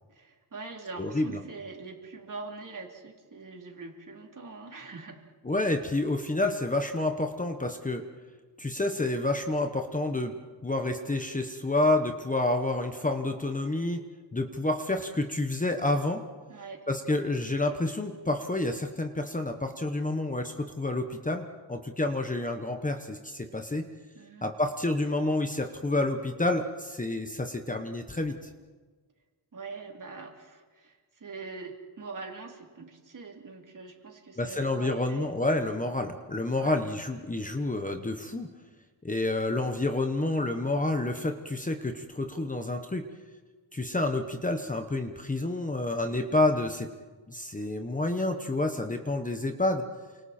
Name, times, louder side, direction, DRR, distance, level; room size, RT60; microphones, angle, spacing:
voice 1, 0.1-5.2 16.5-16.9 24.1-24.5 29.5-35.3 36.6-36.9, right 4 dB, 45° right, 1 dB, 3.6 m, -43 dB
voice 2, 1.0-1.4 5.4-8.0 8.6-10.3 10.6-14.0 14.3-16.2 16.9-23.8 24.4-28.4 34.4-38.5 39.0-43.0 43.7-46.9 47.3-49.8, left 2 dB, 20° left, 5 dB, 1.2 m, -29 dB
29.5 x 26.0 x 4.5 m, 1.4 s
wide cardioid pair, 160°, 43 cm